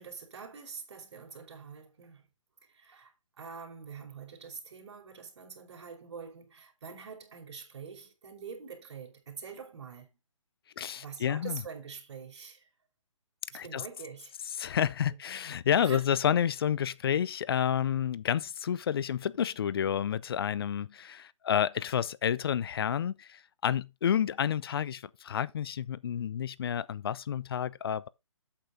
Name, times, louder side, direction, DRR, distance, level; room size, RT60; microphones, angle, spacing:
voice 1, 0.0-2.3 2.6-10.1 11.0-12.7 13.5-14.4 15.1-15.2 15.8-16.0, right 6 dB, 55° right, 5.1 m, -45 dB
voice 2, 10.8-11.6 13.5-13.8 14.6-28.1, left 9 dB, 45° left, 0.6 m, -30 dB
8.5 x 7.9 x 3.8 m
figure-of-eight pair, 145°, 17 cm